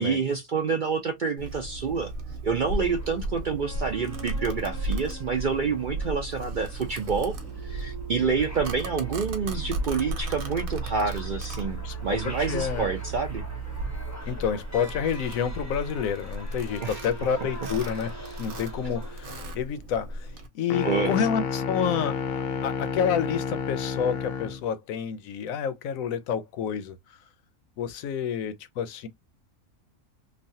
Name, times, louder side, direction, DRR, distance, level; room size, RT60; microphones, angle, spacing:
voice 1, 0.0-2.1 2.4-7.4 7.6-13.4 16.8-17.1 20.8-21.3, right 5 dB, 55° right, 0.5 m, -28 dB
Domestic sounds home sounds, 1.4-20.5, right 2 dB, 90° right, 1.2 m, -35 dB
sound 1, 2.5-19.5, equal, 20° left, 0.6 m, -44 dB
voice 2, 12.5-12.9 14.3-18.1 18.4-20.1 20.5-26.9 27.8-29.1, left 7 dB, 80° left, 1.0 m, -29 dB
sound 2, 20.7-24.6, left 6 dB, 60° left, 0.7 m, -30 dB
3.1 x 2.3 x 2.6 m
omnidirectional pair, 1.4 m